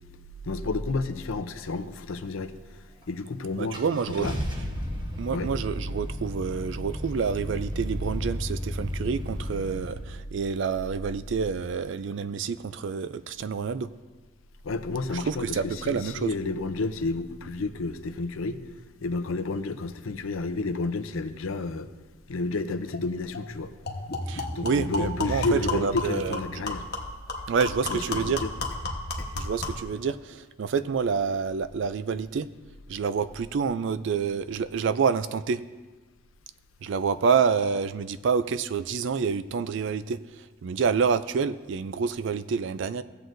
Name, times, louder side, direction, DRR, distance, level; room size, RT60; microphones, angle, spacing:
voice 1, 0.4-3.8 4.1-4.3 5.3-5.5 14.6-18.6 19.0-21.9 22.3-23.7 24.5-26.9 27.9-28.5, left 3 dB, 75° left, 9 dB, 0.6 m, -31 dB
Car / Engine starting, 3.0-3.1 3.7-9.9, equal, 20° right, 1.0 m, -33 dB
voice 2, 3.6-4.4 5.2-13.9 15.1-16.3 24.3-26.6 27.5-28.4 29.4-32.5 32.9-35.6 36.8-40.2 40.6-43.0, right 6 dB, 60° right, 14 dB, 0.3 m, -28 dB
sound 1, 22.9-23.0 23.3-23.5 23.9-29.9, left 2 dB, 50° left, 1.1 m, -33 dB
16.0 x 7.6 x 2.6 m, 1.3 s
head